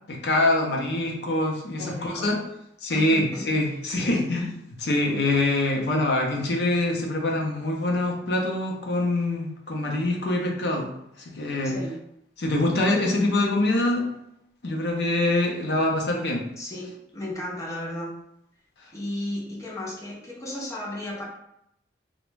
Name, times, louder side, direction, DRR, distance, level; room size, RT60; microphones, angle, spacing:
voice 1, 0.1-2.4 2.8-4.5 4.8-10.9 11.2-11.8 12.4-14.1 14.6-16.5, left 2 dB, 65° left, 1 dB, 0.6 m, -24 dB
voice 2, 1.8-2.3 2.9-4.2 11.6-12.0 16.6-18.1 18.9-21.2, left 1 dB, 15° left, -3 dB, 0.6 m, -34 dB
2.5 x 2.1 x 3.1 m, 0.78 s
head